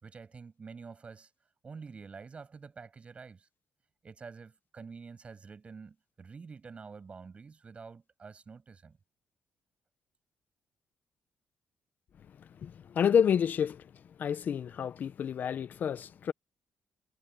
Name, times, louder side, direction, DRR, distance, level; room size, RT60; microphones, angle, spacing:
voice 1, 0.0-1.3 1.6-3.5 4.0-9.0, right 5 dB, 30° right, 6.2 m, -48 dB
voice 2, 12.4-13.9 14.2-16.3, left 8 dB, 50° left, 0.5 m, -29 dB
cardioid pair, 135°, 4 cm